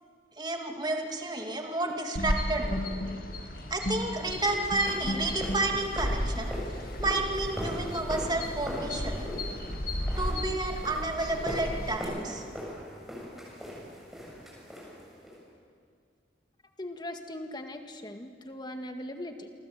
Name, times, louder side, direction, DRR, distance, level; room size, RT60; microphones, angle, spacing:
voice 1, 0.4-2.8 3.7-6.5 7.0-9.3 10.2-12.4, right 2 dB, 25° right, 2 dB, 2.7 m, -31 dB
sound 1, 2.2-12.0, left 1 dB, 55° left, 2.5 m, -34 dB
Steps Parquet And Concrete, 4.3-15.4, equal, ahead, 7.2 m, -41 dB
voice 2, 16.8-19.5, left 1 dB, 25° left, 5 dB, 2.0 m, -39 dB
28.0 x 23.5 x 8.3 m, 2.2 s
head